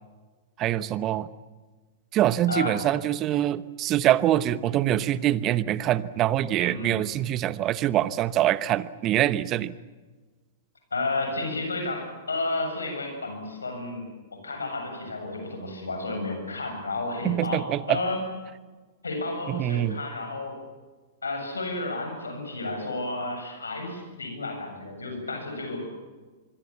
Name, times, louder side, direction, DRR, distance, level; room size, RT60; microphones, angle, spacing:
voice 1, 0.6-1.3 2.1-9.7 17.2-18.0 19.5-20.0, right 12 dB, 35° right, 16 dB, 1.0 m, -24 dB
voice 2, 2.5-2.8 6.6-7.0 10.9-18.2 19.0-20.6 21.2-25.9, left 2 dB, 80° left, 4 dB, 7.6 m, -32 dB
25.0 x 24.0 x 7.3 m, 1.3 s
figure-of-eight pair, 105°, 0 cm